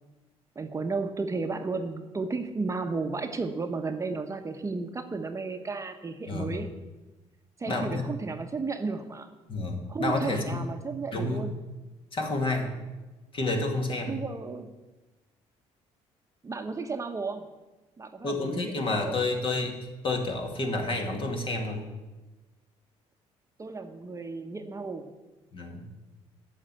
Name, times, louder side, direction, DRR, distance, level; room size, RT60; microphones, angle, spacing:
voice 1, 0.6-6.7 7.6-9.3 9.9-11.6 14.1-14.7 16.4-17.5 18.0-19.2 23.6-25.1, right 4 dB, 25° right, 6 dB, 0.9 m, -33 dB
voice 2, 6.3-6.6 7.7-8.1 9.5-10.8 11.1-11.5 12.1-12.7 13.3-14.2 18.2-19.7 20.0-21.9 25.5-25.9, left 2 dB, 45° left, 3 dB, 2.4 m, -29 dB
9.7 x 6.7 x 9.0 m, 1.2 s
cardioid pair, 90°, 12 cm